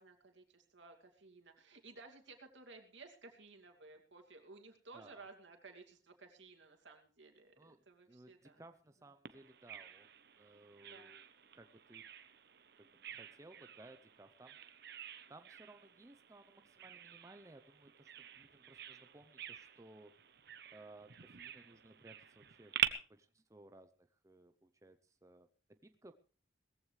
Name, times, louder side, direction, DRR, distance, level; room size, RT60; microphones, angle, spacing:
voice 1, 0.0-8.6 10.9-11.1, right 3 dB, 80° right, 3 dB, 2.6 m, -57 dB
voice 2, 4.9-5.2 7.6-10.1 10.4-11.2 11.5-12.1 12.8-14.6 15.3-20.1 20.7-26.1, right 2 dB, 15° right, 8 dB, 0.6 m, -60 dB
Bird vocalization bird call bird song, 9.3-22.9, right 11 dB, 60° right, 0.9 m, -46 dB
19.0 x 15.0 x 3.3 m, 0.38 s
head